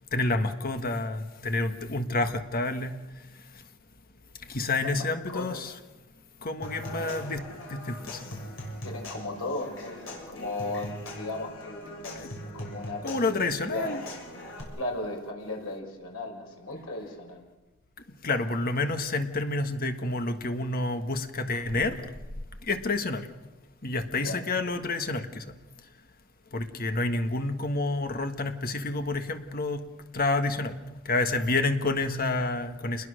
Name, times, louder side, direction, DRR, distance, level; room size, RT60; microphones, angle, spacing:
voice 1, 0.1-3.0 4.5-5.7 6.4-8.2 13.0-14.0 18.2-22.0 22.7-23.3 23.8-25.4 26.5-29.8 30.1-30.7 31.1-33.1, left 2 dB, 45° left, 7 dB, 1.6 m, -29 dB
voice 2, 4.8-5.7 6.8-7.1 8.8-12.3 12.5-14.1 14.8-17.5 24.1-24.4, left 2 dB, 85° left, 1 dB, 5.8 m, -36 dB
Human voice / Acoustic guitar / Percussion, 6.6-14.6, equal, 65° left, 7.1 m, -41 dB
29.0 x 21.5 x 6.6 m, 1.1 s
head